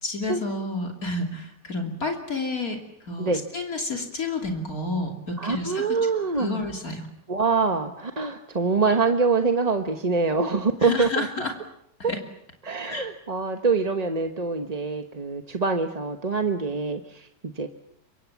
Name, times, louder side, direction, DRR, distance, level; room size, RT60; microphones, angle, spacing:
voice 1, 0.0-2.8 3.0-6.0 6.4-7.1 10.8-11.5 12.1-12.2 12.9-13.1, left 2 dB, 55° left, 3 dB, 3.3 m, -30 dB
voice 2, 5.4-6.6 7.3-11.3 12.0-12.1 12.6-17.7, right 4 dB, 25° right, 6 dB, 1.1 m, -25 dB
27.0 x 24.5 x 7.3 m, 0.75 s
omnidirectional pair, 1.8 m